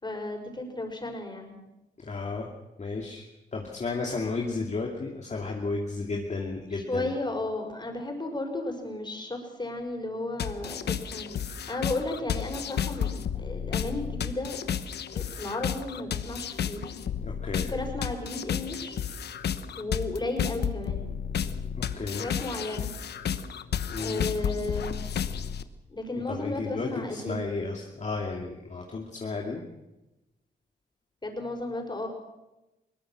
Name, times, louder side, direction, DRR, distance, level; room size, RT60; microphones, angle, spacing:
voice 1, 0.0-1.6 6.7-11.3 11.7-14.6 15.1-16.9 17.7-19.0 19.8-21.0 22.1-22.9 24.0-25.1 25.9-27.5 31.2-32.1, left 2 dB, 25° left, 3 dB, 5.7 m, -34 dB
voice 2, 2.0-2.5 2.8-3.3 3.5-7.1 17.2-17.7 21.7-22.3 23.9-24.2 26.3-29.6, left 3 dB, 45° left, 0 dB, 2.6 m, -33 dB
sound 1, 10.4-25.6, left 8 dB, 80° left, 1.1 m, -32 dB
21.5 x 19.0 x 6.3 m, 0.98 s
cardioid pair, 75°, 17 cm